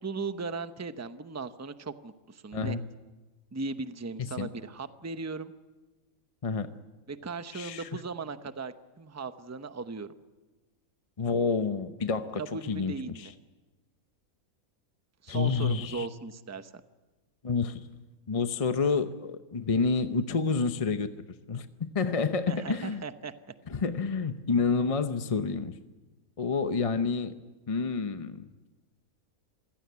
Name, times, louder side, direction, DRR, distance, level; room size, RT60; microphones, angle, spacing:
voice 1, 0.0-2.8 3.5-5.5 7.1-10.1 12.4-13.3 15.2-16.8 22.5-23.3, right 4 dB, 15° right, 10 dB, 0.6 m, -37 dB
voice 2, 4.2-4.5 6.4-6.7 7.5-7.9 11.2-13.3 15.3-16.1 17.4-17.8 18.3-21.1 21.5-23.0 23.7-25.7 26.4-27.4 27.7-28.5, left 4 dB, 30° left, 9 dB, 0.6 m, -29 dB
26.5 x 16.5 x 9.5 m, 1.2 s
omnidirectional pair, 1.5 m